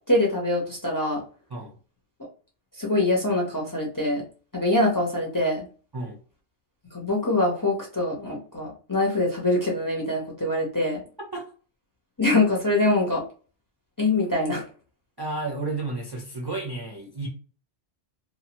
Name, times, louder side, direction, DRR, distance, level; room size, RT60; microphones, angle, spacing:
voice 1, 0.1-1.2 2.8-4.2 4.5-5.7 6.9-11.0 12.2-13.2 14.0-14.6, left 2 dB, 25° left, -1 dB, 0.5 m, -24 dB
voice 2, 11.2-11.5 15.2-17.3, right 2 dB, 35° right, -1 dB, 0.4 m, -32 dB
2.7 x 2.1 x 2.9 m, 0.38 s
omnidirectional pair, 1.1 m